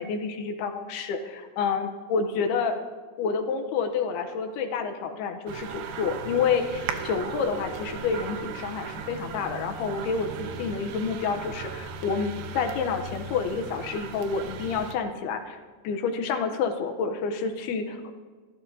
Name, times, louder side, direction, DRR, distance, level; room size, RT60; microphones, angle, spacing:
voice 1, 0.0-2.8 3.2-18.1, left 5 dB, 75° left, 6 dB, 2.8 m, -29 dB
sound 1, 5.5-14.9, right 6 dB, 75° right, 2.7 m, -37 dB
26.0 x 13.0 x 2.8 m, 1.5 s
omnidirectional pair, 4.8 m